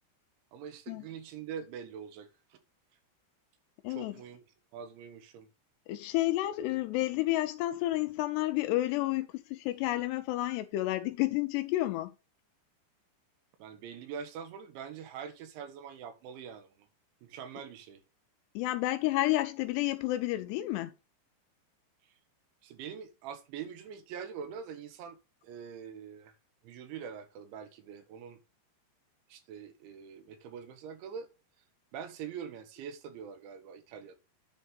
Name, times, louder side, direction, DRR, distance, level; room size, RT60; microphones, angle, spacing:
voice 1, 0.5-2.6 3.9-4.4 4.7-5.5 13.6-16.9 17.2-18.0 22.0-22.2 22.6-25.2 25.4-26.3 26.6-28.4 29.3-31.3 31.9-34.2, right 7 dB, 80° right, 3.6 m, -44 dB
voice 2, 5.9-12.1 18.6-20.9, left 16 dB, 80° left, 2.6 m, -30 dB
10.0 x 4.3 x 5.3 m
omnidirectional pair, 5.3 m